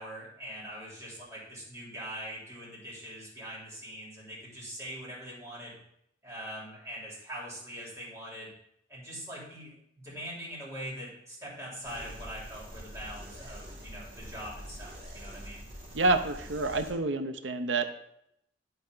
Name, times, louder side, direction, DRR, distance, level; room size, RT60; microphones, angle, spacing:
voice 1, 0.0-5.8 6.2-8.5 8.9-15.6, equal, 15° right, -7 dB, 3.1 m, -42 dB
sound 1, 11.8-16.9, equal, 35° right, 2.8 m, -45 dB
voice 2, 15.9-17.8, right 2 dB, 90° right, 8 dB, 0.7 m, -28 dB
11.0 x 4.2 x 3.9 m, 0.76 s
head